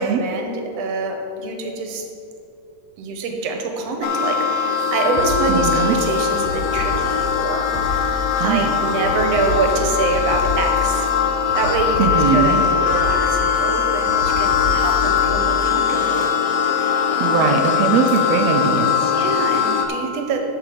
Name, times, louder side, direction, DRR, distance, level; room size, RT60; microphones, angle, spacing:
voice 1, 0.0-2.0 3.0-11.1 11.5-16.3 16.6-17.6 17.9-18.1 19.1-20.4, right 3 dB, 65° right, 3 dB, 1.8 m, -25 dB
sound 1, 4.0-19.9, left 7 dB, 90° left, 2.4 m, -20 dB
sound 2, 5.2-5.9 6.3-7.4 7.7-8.5 8.9-11.1 11.5-12.6 12.9-13.7 14.1-15.5, left 2 dB, 65° left, 2.7 m, -29 dB
voice 2, 5.5-5.9 8.4-8.7 12.0-12.6 17.2-19.1, right 6 dB, 85° right, 3 dB, 1.5 m, -20 dB
13.0 x 5.0 x 5.0 m, 2.8 s
omnidirectional pair, 3.7 m